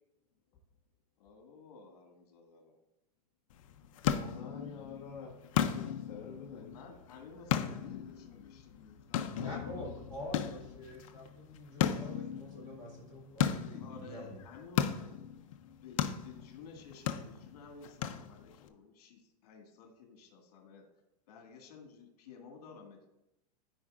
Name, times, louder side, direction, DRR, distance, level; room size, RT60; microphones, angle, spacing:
voice 1, 1.2-2.8 6.6-10.3 13.8-15.2 15.8-20.8 21.3-23.1, left 5 dB, 65° left, 2 dB, 1.8 m, -53 dB
sound 1, 3.5-18.7, left 9 dB, 50° left, 0.5 m, -37 dB
voice 2, 4.0-6.8, left 5 dB, 25° left, -4 dB, 1.1 m, -47 dB
voice 3, 9.2-14.4, equal, 20° right, -3 dB, 1.9 m, -46 dB
13.5 x 4.6 x 2.5 m, 0.89 s
supercardioid pair, 175°, 21 cm